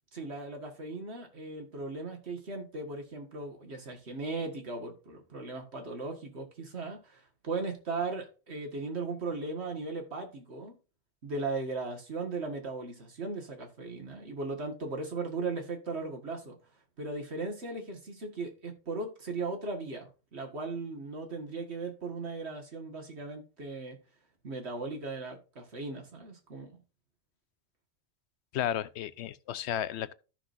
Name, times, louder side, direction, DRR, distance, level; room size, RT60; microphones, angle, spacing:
voice 1, 0.1-10.7 11.2-16.6 17.0-24.0 24.4-26.8, right 3 dB, 80° right, 2.0 m, -37 dB
voice 2, 28.5-30.1, left 11 dB, 85° left, 0.9 m, -33 dB
14.0 x 6.0 x 2.6 m
omnidirectional pair, 1.1 m